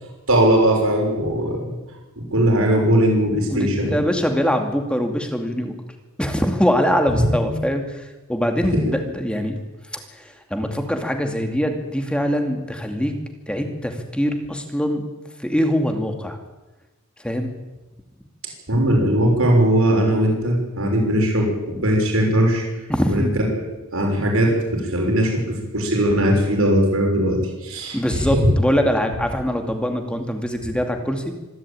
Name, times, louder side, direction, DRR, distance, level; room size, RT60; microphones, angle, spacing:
voice 1, 0.3-1.7 2.3-3.9 7.2-7.5 8.7-8.8 18.7-22.6 23.1-23.2 23.9-28.4, right 1 dB, 75° right, 0 dB, 6.5 m, -19 dB
voice 2, 3.5-5.7 6.2-9.6 9.9-13.1 13.5-15.0 15.4-16.4 17.2-17.5 22.9-23.3 27.9-31.3, equal, 5° left, 4 dB, 2.4 m, -23 dB
25.5 x 12.0 x 8.9 m, 1.1 s
head